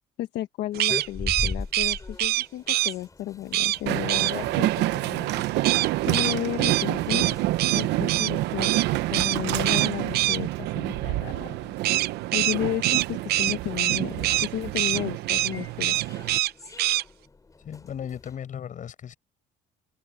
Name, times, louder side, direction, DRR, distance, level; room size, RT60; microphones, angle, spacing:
voice 1, 0.2-5.4 6.0-7.4 7.7-11.7 12.3-15.9, left 13 dB, 80° left, 1.5 m, -33 dB
sound 1, 0.7-18.4, left 3 dB, 20° left, 5.2 m, -42 dB
sound 2, 0.7-2.9 3.5-3.8 4.1-4.3 5.6-8.3 8.6-8.9 9.1-9.4 9.6-10.4 11.8-14.5 14.7-15.0 15.3-15.5 15.8-16.5 16.8-17.0, right 16 dB, 70° right, 0.6 m, -24 dB
Train, 3.9-16.4, right 17 dB, 85° right, 0.9 m, -28 dB
voice 2, 17.6-19.1, left 8 dB, 50° left, 6.9 m, -36 dB
open air
cardioid pair, 110°, 17 cm